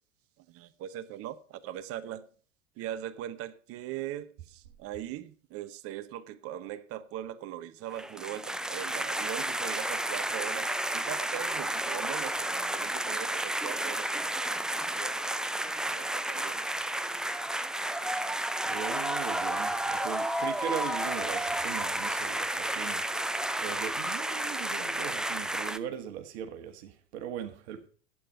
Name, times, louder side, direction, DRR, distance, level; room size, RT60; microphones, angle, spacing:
voice 1, 0.4-2.3 2.8-15.3 15.9-16.6, right 11 dB, 35° right, 0.9 m, -40 dB
sound 1, 7.9-25.8, right 1 dB, ahead, 0.4 m, -32 dB
voice 2, 18.3-27.9, right 9 dB, 55° right, 1.7 m, -39 dB
11.5 x 8.7 x 5.6 m
figure-of-eight pair, 90°, 38 cm